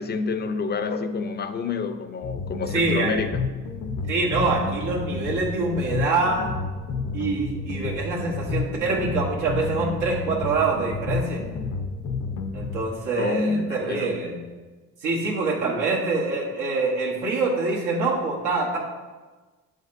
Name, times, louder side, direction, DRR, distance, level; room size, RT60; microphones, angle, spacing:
voice 1, 0.0-3.3 13.2-14.1, left 4 dB, 35° left, 0.5 m, -28 dB
sound 1, 2.2-12.8, left 4 dB, 80° left, 0.7 m, -30 dB
voice 2, 2.7-3.2 4.1-6.5 7.1-11.4 12.5-14.4 15.0-18.8, right 3 dB, 90° right, 1.2 m, -25 dB
7.5 x 5.1 x 2.6 m
cardioid pair, 90°, 30 cm